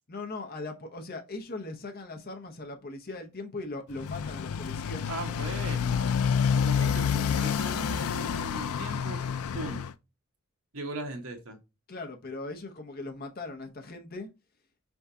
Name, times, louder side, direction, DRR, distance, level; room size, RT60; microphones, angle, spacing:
voice 1, 0.1-5.1 11.9-14.3, left 2 dB, 45° left, 0.8 m, -39 dB
Motorcycle, 3.9-9.9, left 7 dB, 75° left, 0.4 m, -28 dB
voice 2, 5.1-6.1 6.6-9.2 9.5-9.8 10.7-11.6, right 2 dB, 70° right, 1.2 m, -38 dB
4.5 x 3.5 x 2.7 m
head